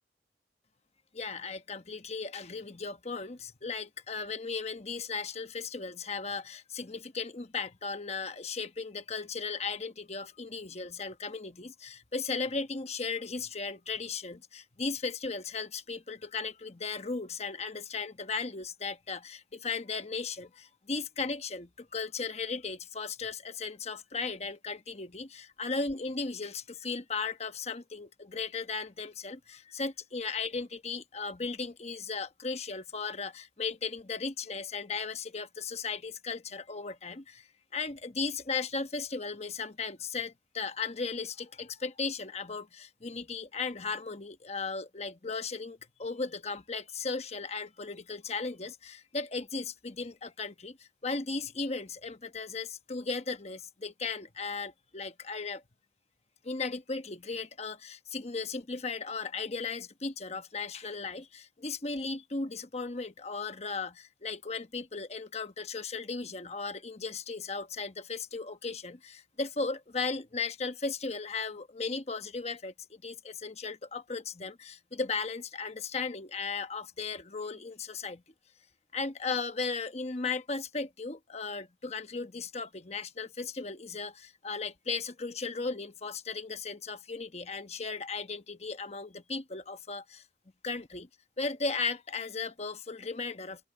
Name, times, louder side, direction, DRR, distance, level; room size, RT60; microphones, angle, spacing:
voice 1, 1.1-55.6 56.4-78.2 78.9-90.2 90.6-91.1 91.4-93.6, left 4 dB, 35° left, 1.1 m, -36 dB
open air
head